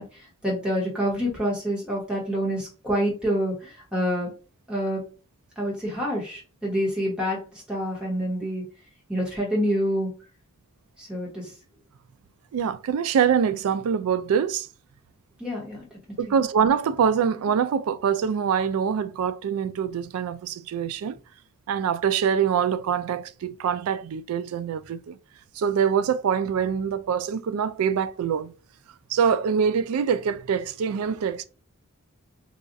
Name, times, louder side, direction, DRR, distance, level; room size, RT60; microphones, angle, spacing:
voice 1, 0.0-4.3 4.7-5.0 5.6-8.6 9.1-10.1 11.0-11.5 15.4-16.3, equal, 5° right, 1.1 m, -27 dB
voice 2, 12.5-14.7 16.2-21.2 21.7-25.2 25.6-28.5 29.1-31.4, right 7 dB, 80° right, 0.3 m, -24 dB
4.0 x 2.3 x 2.6 m
head